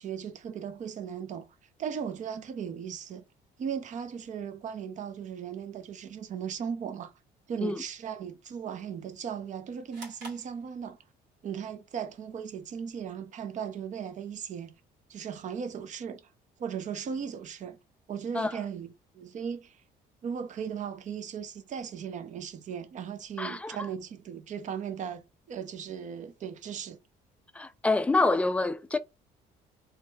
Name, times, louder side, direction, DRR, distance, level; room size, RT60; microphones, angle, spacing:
voice 1, 0.0-1.5 1.8-3.2 3.6-7.1 7.5-11.0 11.4-14.7 15.1-16.2 16.6-17.8 18.1-19.8 20.2-27.0, right 7 dB, 45° right, 0.6 m, -37 dB
sound 1, 9.9-11.3, right 2 dB, 85° right, 2.0 m, -48 dB
voice 2, 23.4-23.8 27.5-29.0, left 3 dB, 5° left, 0.4 m, -26 dB
3.2 x 2.3 x 3.1 m
cardioid pair, 110°, 17 cm